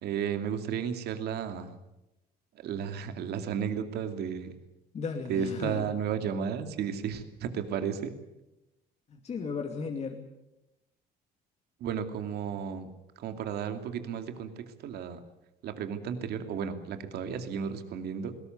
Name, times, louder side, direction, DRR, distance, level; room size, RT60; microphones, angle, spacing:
voice 1, 0.0-1.7 2.5-4.5 5.3-8.1 11.8-12.9 13.2-15.2 15.6-18.3, right 7 dB, 70° right, 8 dB, 2.5 m, -33 dB
voice 2, 4.9-5.9 9.1-10.2, left 5 dB, 40° left, 3 dB, 2.5 m, -35 dB
20.5 x 18.0 x 9.5 m, 0.94 s
cardioid pair, 110°, 17 cm